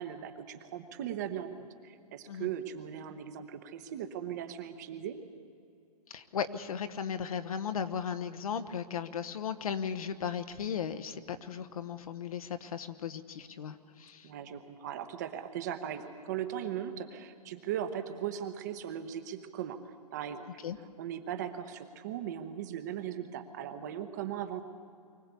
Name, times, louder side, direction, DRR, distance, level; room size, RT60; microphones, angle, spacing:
voice 1, 0.0-5.2 14.2-20.5 21.0-24.6, right 9 dB, 25° right, 8 dB, 0.9 m, -38 dB
voice 2, 6.1-14.3 20.6-20.8, left 7 dB, 60° left, 10 dB, 1.2 m, -36 dB
24.0 x 16.0 x 8.3 m, 2.4 s
hypercardioid pair, 170°, 21 cm